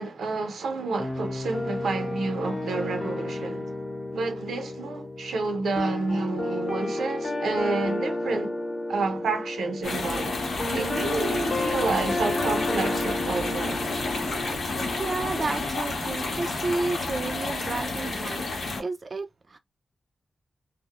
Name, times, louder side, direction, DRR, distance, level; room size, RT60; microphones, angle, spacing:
voice 1, 0.0-3.7 4.1-8.6 8.9-10.4 10.7-13.9, right 3 dB, 85° right, 0.6 m, -29 dB
sound 1, 1.0-15.4, left 2 dB, 35° left, 0.8 m, -32 dB
sound 2, 9.8-18.8, left 3 dB, 80° left, 0.8 m, -30 dB
voice 2, 15.0-18.5 18.8-19.6, right 3 dB, 40° right, 0.3 m, -31 dB
2.1 x 2.0 x 2.8 m
cardioid pair, 90°, 0 cm